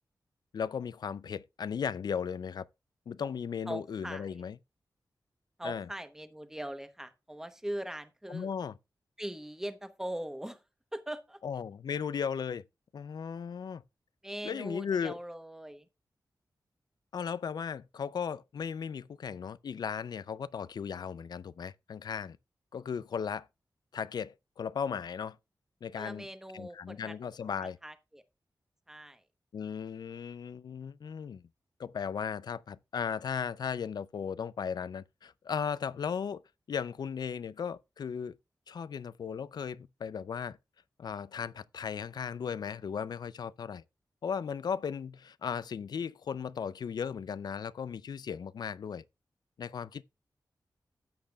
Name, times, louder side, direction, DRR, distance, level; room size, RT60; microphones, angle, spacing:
voice 1, 0.5-2.7 3.1-4.6 5.6-5.9 8.3-8.7 11.4-12.6 12.9-13.8 14.4-15.2 17.1-22.4 22.7-23.5 23.9-25.4 25.8-26.3 26.5-27.8 29.5-31.4 31.8-36.4 36.7-38.4 38.7-40.6 41.0-43.8 44.2-49.0 49.6-50.0, left 7 dB, 65° left, 0.4 m, -36 dB
voice 2, 3.7-4.5 5.6-8.5 9.2-10.6 10.9-11.4 14.2-15.9 25.9-27.2 27.5-28.2 28.9-29.2, right 1 dB, 5° right, 0.9 m, -41 dB
13.0 x 8.7 x 2.3 m
wide cardioid pair, 160°, 7 cm